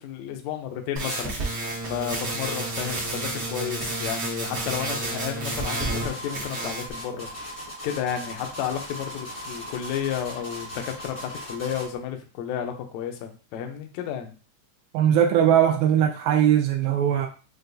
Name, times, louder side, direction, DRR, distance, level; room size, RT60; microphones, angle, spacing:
voice 1, 0.0-7.3 7.8-14.3, left 9 dB, 90° left, 1.6 m, -32 dB
sound 1, 1.0-6.1 6.3-6.9, right 2 dB, 65° right, 1.0 m, -30 dB
sound 2, 5.5-11.9, equal, 25° left, 0.6 m, -38 dB
voice 2, 14.9-17.3, right 9 dB, 85° right, 2.3 m, -20 dB
6.4 x 2.3 x 2.6 m
omnidirectional pair, 4.0 m